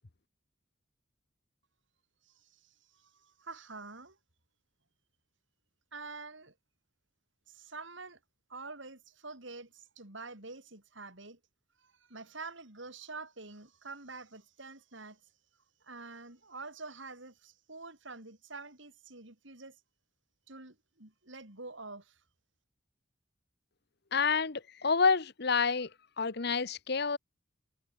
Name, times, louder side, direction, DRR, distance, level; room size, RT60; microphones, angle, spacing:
voice 1, 2.2-4.2 5.9-6.5 7.5-8.2 8.5-11.4 11.8-15.2 15.8-19.8 20.5-22.2, right 3 dB, 65° right, 5.1 m, -47 dB
voice 2, 24.1-25.9 26.2-27.2, left 5 dB, 55° left, 1.0 m, -28 dB
head